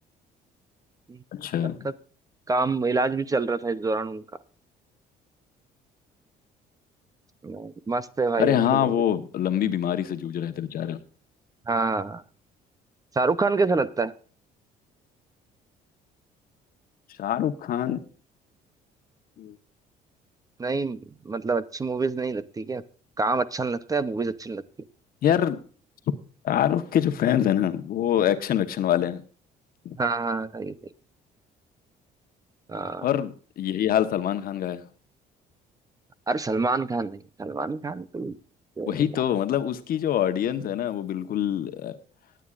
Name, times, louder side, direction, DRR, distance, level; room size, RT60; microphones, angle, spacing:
voice 1, 1.3-1.9 8.4-11.0 17.2-18.0 19.4-19.5 25.2-25.6 26.4-29.2 29.8-30.0 33.0-33.3 33.6-34.8 38.9-41.9, left 10 dB, 60° left, 9 dB, 1.2 m, -25 dB
voice 2, 2.5-4.2 7.4-8.9 11.7-12.2 13.1-14.1 20.6-22.8 23.2-24.6 30.0-30.7 32.7-33.1 36.3-38.4 38.8-39.1, right 3 dB, 20° right, 15 dB, 0.7 m, -27 dB
18.5 x 9.1 x 2.5 m, 0.40 s
cardioid pair, 110°, 17 cm